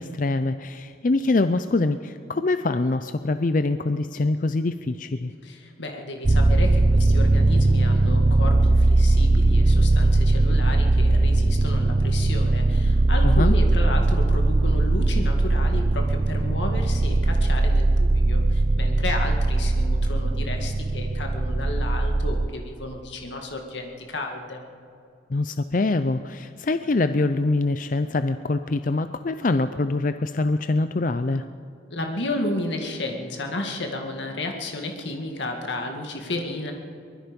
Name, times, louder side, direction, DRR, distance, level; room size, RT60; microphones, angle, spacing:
voice 1, 0.0-5.3 13.2-13.5 25.3-31.4, left 2 dB, 45° left, 11 dB, 0.5 m, -24 dB
voice 2, 5.4-24.6 31.9-36.7, left 2 dB, 70° left, 3 dB, 2.0 m, -32 dB
sound 1, 6.2-22.5, right 2 dB, 35° right, 0.5 m, -20 dB
23.5 x 21.0 x 5.3 m, 2.5 s
head